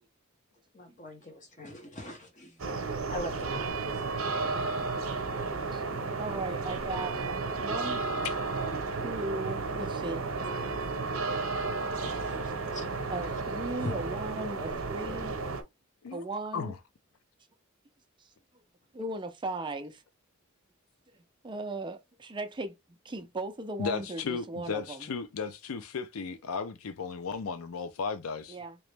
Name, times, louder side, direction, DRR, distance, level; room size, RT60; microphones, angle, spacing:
voice 1, 0.7-2.5 3.1-3.7 4.0-4.8 5.1-5.6 7.8-7.9 8.6-9.1 12.0-12.9 13.8-13.9, left 1 dB, 35° left, 1.1 m, -43 dB
sound 1, 2.6-15.6, right 3 dB, 80° right, 0.8 m, -33 dB
voice 2, 6.2-7.2 7.6-8.1 9.0-10.2 13.1-15.4 16.1-16.7 18.9-20.0 21.4-22.7 23.0-25.1 28.5-28.8, right 2 dB, 20° right, 0.4 m, -37 dB
voice 3, 23.8-28.6, left 5 dB, 85° left, 0.5 m, -35 dB
3.0 x 3.0 x 3.2 m
head